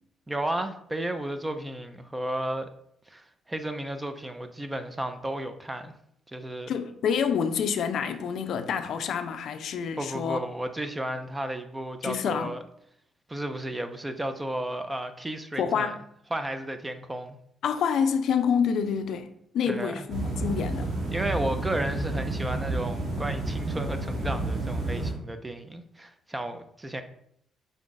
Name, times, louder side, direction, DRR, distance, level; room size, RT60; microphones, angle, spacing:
voice 1, 0.3-2.7 3.1-5.9 6.3-6.7 10.0-12.6 13.3-15.9 16.3-17.4 19.7-20.0 21.1-27.0, right 1 dB, 15° right, 0.4 m, -33 dB
voice 2, 6.7-10.4 12.0-12.5 15.6-16.0 17.6-20.9, left 7 dB, 70° left, 0.4 m, -27 dB
sound 1, 20.1-25.1, right 2 dB, 60° right, 1.7 m, -30 dB
5.2 x 2.4 x 3.9 m
cardioid pair, 90°, 0 cm